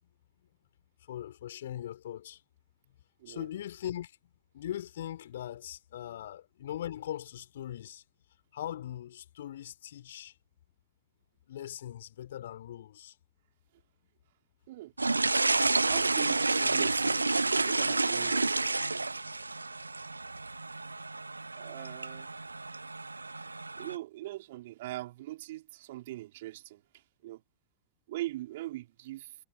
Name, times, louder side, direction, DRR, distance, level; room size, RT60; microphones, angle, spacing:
voice 1, 1.0-2.4 3.3-8.0 8.5-10.4 11.5-13.2, left 11 dB, 60° left, 3.8 m, -40 dB
sound 1, 15.0-24.0, right 3 dB, 80° right, 0.6 m, -30 dB
voice 2, 15.9-18.6 21.5-22.3 23.8-27.4 28.1-29.4, right 16 dB, 55° right, 3.5 m, -41 dB
figure-of-eight pair, 90°, 0 cm